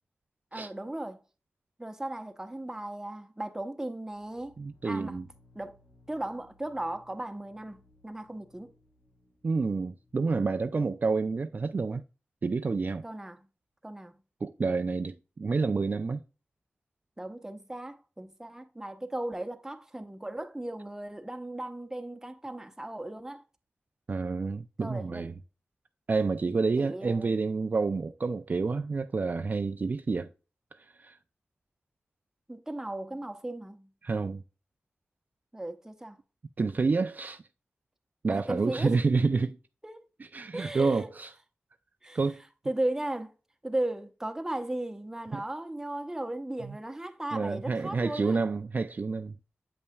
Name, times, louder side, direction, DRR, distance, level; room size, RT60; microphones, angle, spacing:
voice 1, 0.5-1.2 1.8-4.5 4.8-5.2 5.5-5.8 6.1-8.7 13.0-13.5 13.8-14.2 17.2-23.4 24.8-25.3 26.8-27.3 32.5-33.9 35.5-36.2 38.3-39.0 39.8-40.0 40.5-41.1 42.0-42.2 42.6-43.3 43.6-48.4, right 1 dB, 10° right, 0.8 m, -36 dB
sound 1, 4.1-11.8, left 2 dB, 50° left, 1.5 m, -64 dB
voice 2, 4.6-5.3 9.4-12.0 12.4-13.0 14.4-16.2 24.1-25.3 26.1-30.3 30.7-31.2 34.0-34.4 36.6-37.4 38.2-39.6 40.2-41.3 42.1-42.4 45.3-45.4 46.6-46.8 47.3-49.4, right 4 dB, 45° right, 0.3 m, -29 dB
8.1 x 5.4 x 2.2 m
wide cardioid pair, 80°, 4 cm